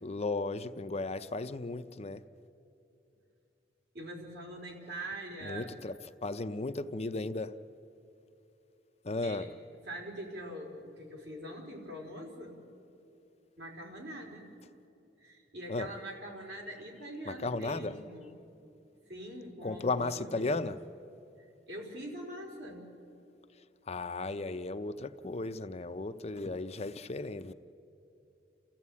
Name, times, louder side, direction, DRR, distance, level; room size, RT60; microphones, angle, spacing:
voice 1, 0.0-2.2 5.4-5.9 6.2-7.5 9.0-9.5 15.7-15.9 17.3-18.0 19.6-20.8 23.9-27.5, left 3 dB, 35° left, 10 dB, 0.6 m, -35 dB
voice 2, 3.9-5.7 9.2-9.5 9.8-12.6 13.6-14.5 15.2-18.4 19.1-20.7 21.4-22.9, right 1 dB, 65° right, 1 dB, 4.2 m, -43 dB
29.5 x 14.5 x 8.4 m, 2.7 s
head